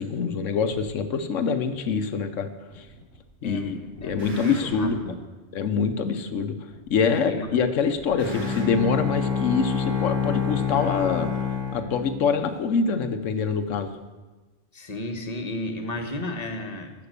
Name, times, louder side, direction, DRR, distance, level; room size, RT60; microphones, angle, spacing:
voice 1, 0.0-2.9 3.4-5.0 5.5-6.6 6.9-11.4 11.7-14.0, left 5 dB, 80° left, 9 dB, 1.2 m, -25 dB
sound 1, 0.7-0.8 1.7-1.8 2.7-3.2 3.5-4.9 5.7-5.8 6.7-7.2 7.5-8.7, equal, 75° right, 4.5 m, -44 dB
voice 2, 3.4-5.2 7.0-7.6 14.7-16.9, left 1 dB, 35° left, 5 dB, 1.2 m, -33 dB
Bowed string instrument, 8.1-12.5, left 6 dB, 30° right, 3.0 m, -27 dB
13.5 x 5.9 x 6.7 m, 1.2 s
omnidirectional pair, 1.3 m